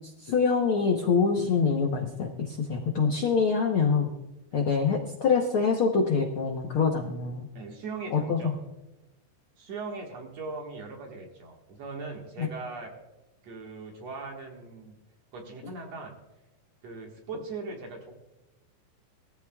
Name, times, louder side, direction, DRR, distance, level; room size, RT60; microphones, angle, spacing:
voice 1, 0.2-4.1 4.5-7.5 8.1-8.5, left 5 dB, 75° left, 1 dB, 1.2 m, -25 dB
voice 2, 7.5-8.6 9.6-13.0 13.4-14.9 15.3-16.2 16.8-18.1, right 3 dB, 55° right, 0 dB, 2.6 m, -39 dB
19.5 x 14.0 x 2.4 m, 0.99 s
omnidirectional pair, 4.0 m